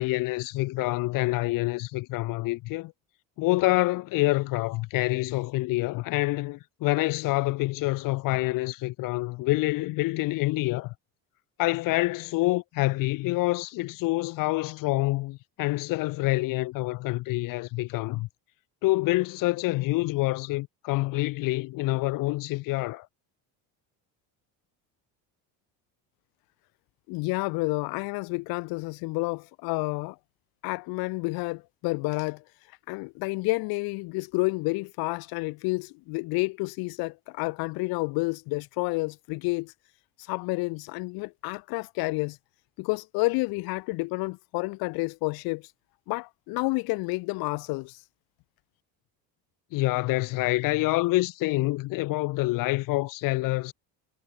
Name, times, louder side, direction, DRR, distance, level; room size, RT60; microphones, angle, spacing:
voice 1, 0.0-2.9 3.4-10.9 11.6-18.3 18.8-23.1 49.7-53.7, left 20 dB, 65° left, 3.6 m, -27 dB
voice 2, 27.1-30.2 30.6-32.4 32.9-39.7 40.2-42.4 42.8-45.7 46.1-48.0, left 26 dB, 80° left, 3.5 m, -30 dB
cardioid pair, 175°, 36 cm